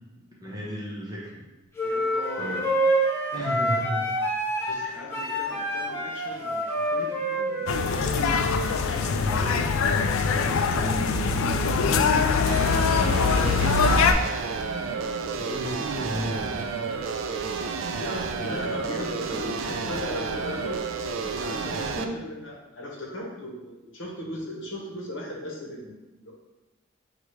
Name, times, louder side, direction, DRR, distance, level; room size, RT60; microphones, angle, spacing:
voice 1, 0.4-1.4 2.4-2.7 3.3-4.2 4.6-4.9 9.2-9.8 10.3-14.0 15.4-16.6 21.7-22.2, equal, 20° right, -5 dB, 0.9 m, -34 dB
voice 2, 1.8-2.5 4.7-8.5 8.8-10.0 15.2-15.4 17.9-20.8 21.2-25.9 26.2-26.3, left 1 dB, 65° left, -3 dB, 1.1 m, -38 dB
sound 1, 1.8-8.3, right 1 dB, 10° left, 0.7 m, -27 dB
sound 2, 7.7-14.1, left 5 dB, 80° left, 0.3 m, -23 dB
sound 3, 12.5-22.0, right 4 dB, 70° right, 0.4 m, -31 dB
6.2 x 2.4 x 3.1 m, 1.1 s
head